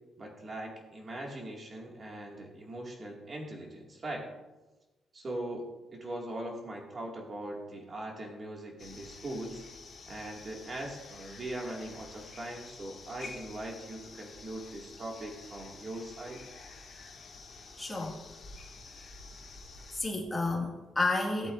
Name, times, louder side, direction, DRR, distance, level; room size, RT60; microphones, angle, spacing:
voice 1, 0.2-4.3 5.1-9.6 10.1-16.4, right 1 dB, 30° right, -1 dB, 2.2 m, -40 dB
sound 1, 8.8-20.0, left 3 dB, 40° left, 2.0 m, -49 dB
voice 2, 17.8-18.2 20.0-21.5, left 2 dB, 10° left, -2 dB, 2.0 m, -31 dB
17.0 x 8.1 x 2.6 m, 1.1 s
cardioid pair, 160°, 0 cm